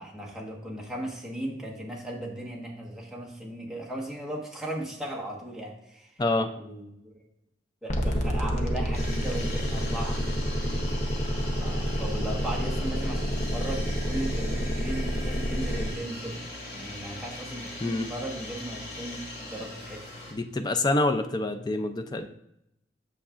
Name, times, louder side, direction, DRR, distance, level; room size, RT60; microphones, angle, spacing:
voice 1, 0.0-6.1 6.6-7.2 7.8-10.2 11.6-16.4 16.7-20.0, right 1 dB, ahead, -4 dB, 1.3 m, -37 dB
sound 1, 7.9-15.9, equal, 45° left, 0.8 m, -29 dB
sound 2, 8.9-20.3, left 1 dB, 60° left, 2.4 m, -40 dB
voice 2, 20.3-22.3, left 2 dB, 25° left, 7 dB, 0.5 m, -26 dB
8.5 x 6.5 x 2.5 m, 0.79 s
head